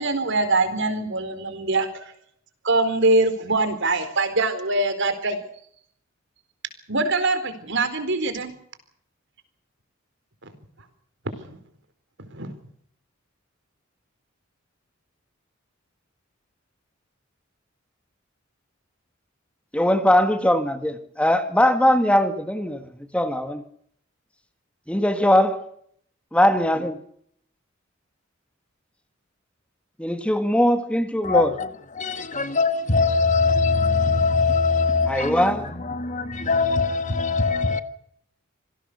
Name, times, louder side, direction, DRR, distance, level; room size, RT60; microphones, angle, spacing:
voice 1, 0.0-2.1 2.6-5.4 6.9-8.5 11.4-11.6 12.3-12.5, right 2 dB, 65° right, 4.2 m, -23 dB
voice 2, 19.7-22.8 23.1-23.6 24.9-25.7 26.3-27.0 30.0-31.5 35.1-35.7, left 1 dB, 5° left, 1.7 m, -20 dB
voice 3, 31.2-37.8, left 4 dB, 40° left, 1.6 m, -22 dB
26.5 x 17.5 x 6.8 m
head